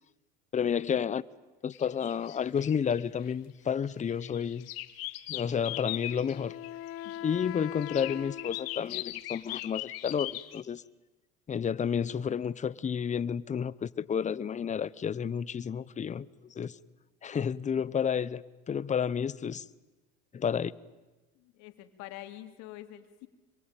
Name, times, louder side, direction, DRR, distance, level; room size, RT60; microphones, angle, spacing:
voice 1, 0.5-1.2 1.6-4.7 5.3-6.5 7.2-10.8 11.5-16.3 16.5-16.8 17.2-19.6 20.3-20.7, left 7 dB, 25° left, 0.8 m, -31 dB
sound 1, 1.7-3.3 3.9-7.2 7.8-10.6, left 17 dB, 85° left, 1.5 m, -40 dB
Wind instrument woodwind instrument, 5.7-9.3, left 12 dB, 50° left, 1.2 m, -42 dB
voice 2, 21.4-23.3, left 14 dB, 70° left, 2.8 m, -47 dB
26.5 x 23.5 x 9.1 m
supercardioid pair, 105°, 29 cm